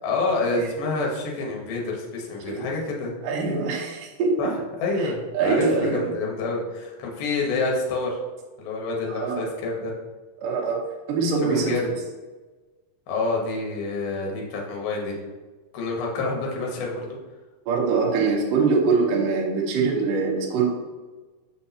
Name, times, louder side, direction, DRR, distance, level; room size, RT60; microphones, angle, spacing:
voice 1, 0.0-3.1 4.4-8.2 8.6-9.9 11.4-11.8 13.1-15.2 15.7-17.2, left 3 dB, 80° left, -1 dB, 3.1 m, -28 dB
voice 2, 3.2-4.5 5.0-5.1 5.3-6.1 9.1-9.5 10.4-10.8 11.1-11.9 17.7-20.7, right 4 dB, 70° right, -2 dB, 2.6 m, -23 dB
6.5 x 6.0 x 2.8 m, 1.3 s
omnidirectional pair, 4.3 m